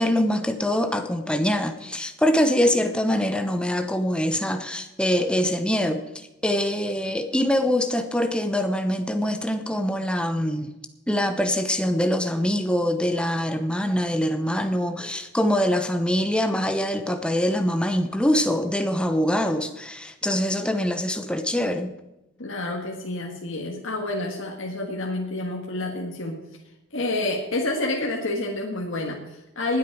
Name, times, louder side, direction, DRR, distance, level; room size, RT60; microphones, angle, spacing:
voice 1, 0.0-6.0 6.4-10.7 11.1-21.9, equal, 5° left, 7 dB, 0.8 m, -24 dB
voice 2, 22.4-26.4 26.9-29.8, left 2 dB, 65° left, -1 dB, 1.7 m, -28 dB
19.5 x 8.5 x 4.8 m, 0.97 s
head